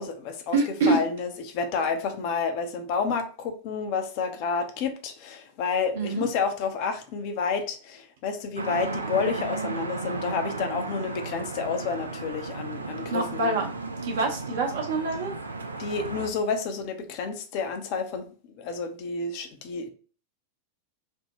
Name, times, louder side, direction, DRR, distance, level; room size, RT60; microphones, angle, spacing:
voice 1, 0.0-13.6 15.8-18.2 18.6-19.9, left 5 dB, 45° left, 0.5 m, -30 dB
voice 2, 0.5-1.0 5.9-6.2 13.1-13.7 14.0-15.3, right 3 dB, 60° right, 0.8 m, -25 dB
sound 1, 8.6-16.3, right 3 dB, 75° right, 0.3 m, -34 dB
3.4 x 2.1 x 2.9 m
figure-of-eight pair, 90°, 0 cm